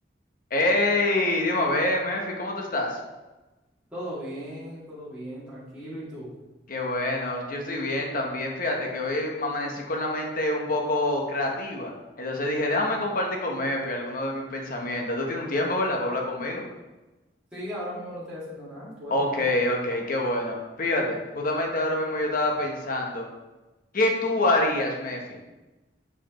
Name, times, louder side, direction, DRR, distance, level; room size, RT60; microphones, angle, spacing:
voice 1, 0.5-3.0 6.7-11.9 12.2-16.7 19.1-23.3 23.9-25.4, left 1 dB, 50° left, 1 dB, 0.9 m, -26 dB
voice 2, 3.9-6.3 17.5-19.5, equal, 5° right, -11 dB, 1.9 m, -37 dB
6.7 x 5.0 x 3.0 m, 1.1 s
head